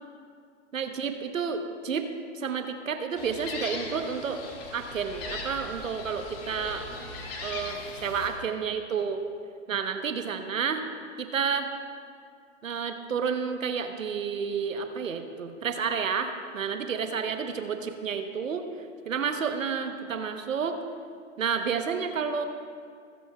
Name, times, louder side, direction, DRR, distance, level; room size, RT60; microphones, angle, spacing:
voice 1, 0.7-2.1 2.3-4.4 4.7-6.8 7.4-9.2 9.7-10.8 11.2-11.7 12.6-18.7 19.1-20.8 21.4-22.5, right 6 dB, 90° right, 7 dB, 0.9 m, -30 dB
Gull seagull, 3.2-8.3, left 3 dB, 45° left, 1.8 m, -39 dB
23.5 x 7.8 x 2.2 m, 2.2 s
hypercardioid pair, 120°, 38 cm